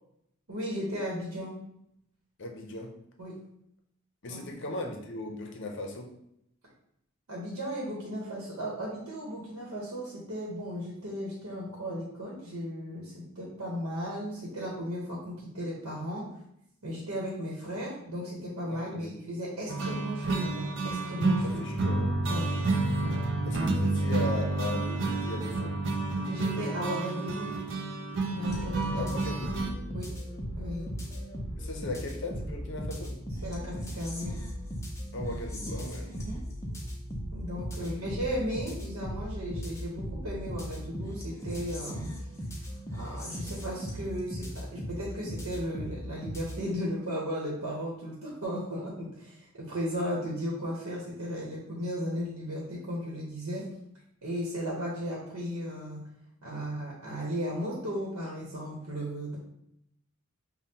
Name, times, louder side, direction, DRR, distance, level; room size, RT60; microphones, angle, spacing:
voice 1, 0.5-1.5 3.2-3.3 4.3-4.5 7.3-16.2 16.8-21.6 22.3-22.5 23.0-23.2 26.3-27.5 28.3-29.2 29.9-30.1 30.6-30.9 33.4-34.4 36.1-36.4 37.3-42.1 42.9-53.7 54.2-56.0 56.4-59.4, equal, 80° right, -4 dB, 1.0 m, -35 dB
voice 2, 2.4-3.0 4.2-6.1 18.7-19.2 21.4-22.2 23.4-25.8 28.9-29.7 31.6-33.2 35.1-36.3 37.8-38.1, left 2 dB, 55° left, 3 dB, 0.6 m, -38 dB
sound 1, 19.7-29.7, right 2 dB, 55° right, 0.5 m, -29 dB
sound 2, 28.4-46.8, equal, 15° left, 0.5 m, -38 dB
5.4 x 2.2 x 2.8 m, 0.76 s
head